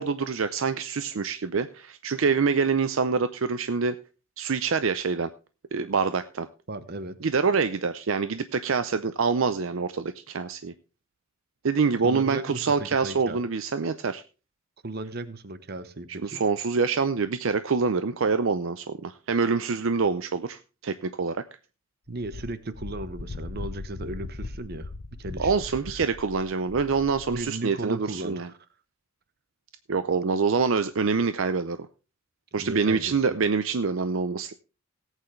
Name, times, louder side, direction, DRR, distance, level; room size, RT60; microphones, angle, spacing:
voice 1, 0.0-4.0 4.4-5.3 5.7-6.5 7.2-10.7 11.6-14.2 16.2-21.4 25.4-28.5 29.9-31.8 32.5-34.5, right 5 dB, 65° right, 0.5 m, -26 dB
voice 2, 6.7-7.2 12.0-13.4 14.8-16.4 22.1-24.9 25.2-25.5 27.3-28.5 32.6-33.1, right 2 dB, 50° right, 0.9 m, -36 dB
Wind, 22.1-27.5, left 3 dB, 65° left, 0.8 m, -39 dB
18.0 x 8.3 x 3.2 m
head